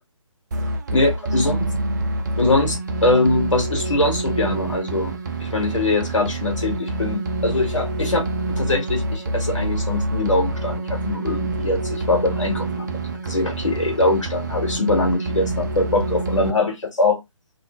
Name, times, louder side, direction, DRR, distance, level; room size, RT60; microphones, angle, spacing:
sound 1, 0.5-16.5, right 2 dB, 35° right, 0.5 m, -26 dB
voice 1, 0.9-1.6 2.4-5.1 5.4-17.2, left 2 dB, 65° left, 1.6 m, -22 dB
2.6 x 2.5 x 3.6 m
figure-of-eight pair, 150°, 17 cm